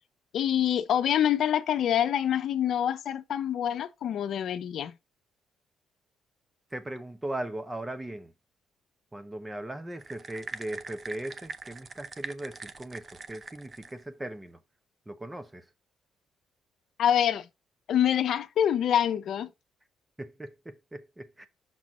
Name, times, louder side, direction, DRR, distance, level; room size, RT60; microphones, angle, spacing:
voice 1, 0.3-4.9 17.0-17.5 17.9-19.5, left 10 dB, 70° left, 0.7 m, -26 dB
voice 2, 6.7-8.3 9.1-14.6 15.1-15.6 20.2-21.5, right 1 dB, 15° right, 1.1 m, -38 dB
sound 1, 10.0-14.0, right 4 dB, 35° right, 0.7 m, -42 dB
6.1 x 5.9 x 3.8 m
cardioid pair, 90°, 0 cm